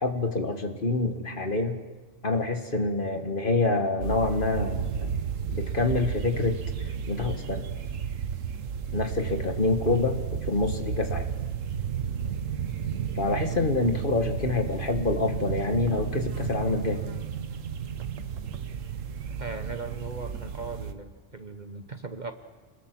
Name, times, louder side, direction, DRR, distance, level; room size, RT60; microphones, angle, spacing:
voice 1, 0.0-1.8 2.2-5.2 5.5-7.7 8.9-10.2 10.5-11.3 13.1-17.0, left 3 dB, 45° left, 6 dB, 1.7 m, -27 dB
sound 1, 4.0-20.9, right 7 dB, 85° right, 1.4 m, -33 dB
voice 2, 19.4-22.3, right 4 dB, 40° right, 7 dB, 1.1 m, -38 dB
27.0 x 21.0 x 6.1 m, 1.3 s
omnidirectional pair, 1.3 m